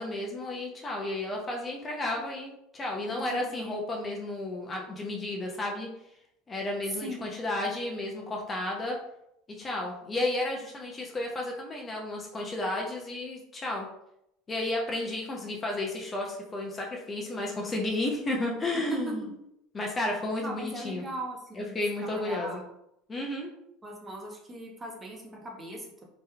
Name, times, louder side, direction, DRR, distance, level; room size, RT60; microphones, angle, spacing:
voice 1, 0.0-5.9 6.5-9.0 9.6-13.9 14.5-19.2 19.7-21.0 21.5-22.6 23.1-23.5, left 2 dB, 25° left, 0 dB, 0.6 m, -32 dB
voice 2, 3.1-3.8 7.0-7.3 18.9-19.1 20.4-21.8 22.1-22.6 23.8-26.0, right 1 dB, 20° right, -1 dB, 0.8 m, -39 dB
3.2 x 2.9 x 2.3 m, 0.80 s
supercardioid pair, 105°, 0 cm